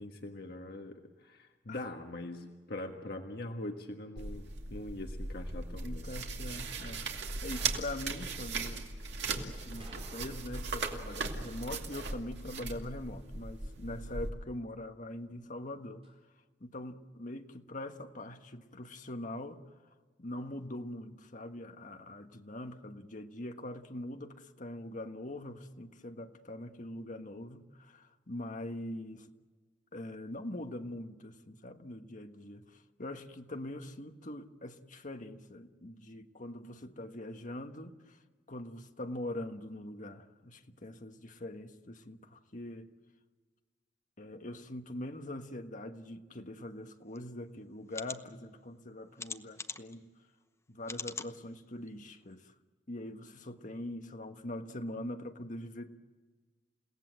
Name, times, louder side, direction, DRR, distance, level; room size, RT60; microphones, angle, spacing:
voice 1, 0.0-4.4 4.7-6.1, left 1 dB, 60° left, 1.5 m, -42 dB
sound 1, 4.2-14.3, right 4 dB, 70° right, 2.4 m, -38 dB
voice 2, 5.8-7.1 7.4-8.9 9.2-16.1 16.6-19.7 20.2-29.3 29.9-38.2 38.5-42.9 44.2-50.1 50.7-52.5 52.9-56.0, left 1 dB, 45° left, 1.5 m, -43 dB
sound 2, 7.5-8.0 9.8-10.7 10.9-11.0 16.0-16.2, right 2 dB, 35° right, 4.2 m, -55 dB
sound 3, 47.1-47.2 47.9-48.2 49.2-50.0 50.8-51.3 51.9-52.0 52.3-52.4, left 4 dB, 15° left, 0.9 m, -41 dB
30.0 x 17.5 x 7.8 m
head